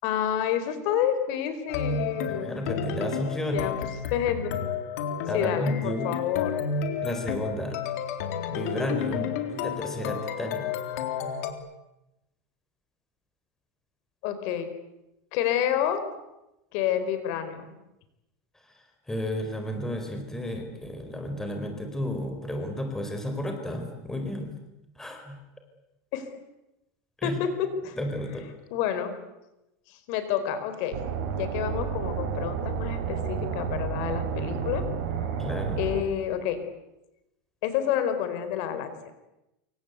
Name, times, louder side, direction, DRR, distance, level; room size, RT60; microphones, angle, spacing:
voice 1, 0.0-2.5 3.5-3.8 4.1-4.5 5.3-6.6 14.2-14.7 15.3-16.0 16.7-17.7 26.1-26.3 27.2-28.0 28.7-29.1 29.9-31.0 31.3-34.8 35.8-36.6 37.6-38.9, left 9 dB, 55° left, 10 dB, 4.3 m, -28 dB
sound 1, 1.7-11.5, left 6 dB, 70° left, 3.7 m, -31 dB
voice 2, 2.3-3.7 5.3-6.1 7.0-7.8 8.5-10.7 18.6-24.5 25.0-25.4 27.2-27.4 28.0-28.4 35.4-35.8, left 1 dB, 5° left, 4 dB, 4.4 m, -32 dB
sound 2, 30.9-36.0, right 6 dB, 80° right, 6.8 m, -31 dB
27.5 x 25.0 x 8.2 m, 0.93 s
supercardioid pair, 165°, 8 cm